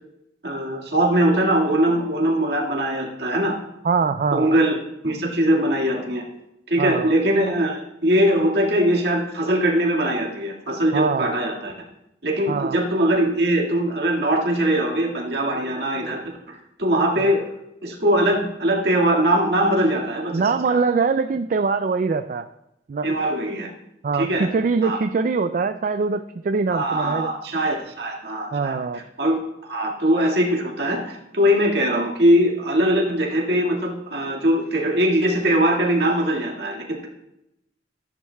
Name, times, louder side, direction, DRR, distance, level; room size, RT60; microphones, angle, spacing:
voice 1, 0.4-3.6 4.3-4.8 5.0-6.2 6.7-11.7 12.2-17.5 17.8-20.8 23.0-23.7 24.1-24.5 24.8-25.0 26.7-37.1, right 1 dB, 65° right, -1 dB, 1.9 m, -21 dB
voice 2, 3.8-4.5 6.8-7.1 10.9-11.3 12.5-12.8 17.2-17.3 20.3-22.5 22.9-23.2 24.0-27.3 28.5-29.0, right 4 dB, 45° right, 9 dB, 0.3 m, -23 dB
14.0 x 11.0 x 2.3 m, 0.85 s
head